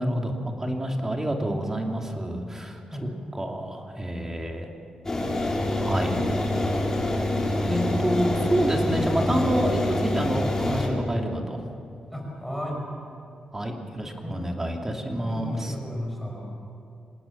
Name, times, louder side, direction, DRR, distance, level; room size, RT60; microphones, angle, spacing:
voice 1, 0.0-4.7 5.8-6.2 7.0-7.3 7.6-11.7 13.5-15.7, right 1 dB, 20° right, 2 dB, 2.7 m, -28 dB
sound 1, 5.0-10.9, left 1 dB, 20° left, 4.7 m, -26 dB
voice 2, 12.1-12.8 14.2-14.4 15.2-16.4, left 1 dB, ahead, -1 dB, 5.7 m, -34 dB
26.0 x 18.5 x 7.2 m, 2.6 s
cardioid pair, 110°, 2 cm